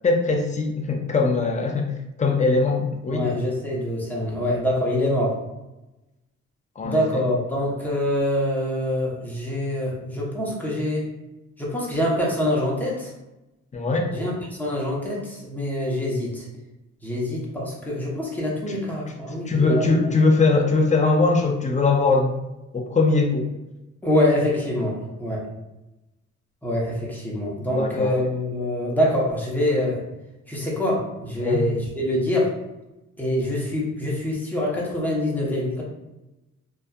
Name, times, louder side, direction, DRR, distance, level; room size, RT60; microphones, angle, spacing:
voice 1, 0.0-1.9 2.2-3.2 6.8-7.2 13.7-14.1 18.7-18.8 19.5-22.3 22.7-23.5 27.7-28.2 31.4-31.6, left 3 dB, 25° left, 2 dB, 0.4 m, -21 dB
voice 2, 3.1-5.3 6.8-11.1 11.6-13.1 14.1-16.5 17.0-20.1 24.0-25.4 26.6-30.0 30.5-32.5 33.2-35.8, left 1 dB, 5° left, -4 dB, 0.8 m, -25 dB
2.5 x 2.3 x 2.3 m, 0.97 s
cardioid pair, 85°, 30 cm